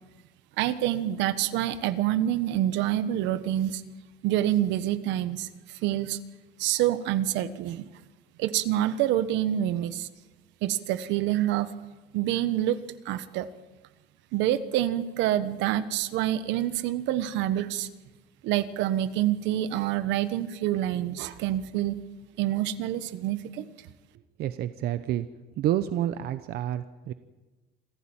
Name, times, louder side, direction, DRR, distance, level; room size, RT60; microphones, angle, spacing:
voice 1, 0.6-3.8 4.2-5.5 5.8-6.2 6.6-7.8 8.4-10.1 10.6-11.7 12.1-12.8 13.0-13.5 14.3-17.9 18.4-22.0 22.4-23.7, right 12 dB, 75° right, 13 dB, 1.3 m, -27 dB
voice 2, 24.4-25.3 25.6-27.1, right 12 dB, 60° right, 11 dB, 0.9 m, -29 dB
27.0 x 15.0 x 8.9 m, 1.2 s
cardioid pair, 140°, 19 cm